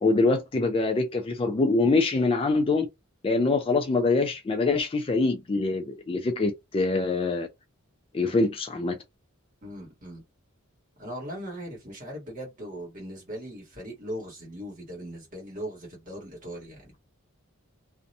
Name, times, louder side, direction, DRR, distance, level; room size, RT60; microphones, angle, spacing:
voice 1, 0.0-2.9 3.2-7.5 8.1-9.0, left 3 dB, 25° left, 0.3 m, -24 dB
voice 2, 9.6-10.2 11.0-17.0, equal, 40° right, 1.3 m, -39 dB
2.6 x 2.1 x 2.6 m
head